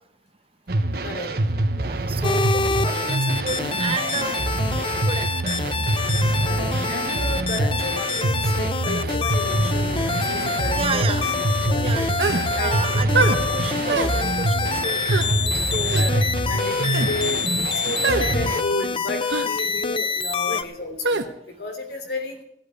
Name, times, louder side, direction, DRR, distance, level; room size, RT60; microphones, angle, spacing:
sound 1, 0.7-18.6, right 2 dB, 60° right, 1.1 m, -25 dB
voice 1, 1.0-1.3 6.4-11.1 11.6-12.0 12.5-13.3 13.8-13.9 15.9-22.4, left 1 dB, 65° left, 5 dB, 3.3 m, -32 dB
voice 2, 1.8-4.4 5.1-5.6 10.7-11.3 11.7-16.0 20.5-20.6, right 4 dB, 35° right, 8 dB, 1.0 m, -31 dB
sound 2, 2.2-20.6, left 5 dB, 30° left, 0.6 m, -26 dB
sound 3, 12.2-12.5 13.1-13.4 13.9-14.1 15.0-15.3 15.9-16.1 16.8-17.1 18.0-18.3 19.3-19.5 21.0-21.3, right 3 dB, 85° right, 1.1 m, -23 dB
16.0 x 8.3 x 8.3 m, 0.74 s
head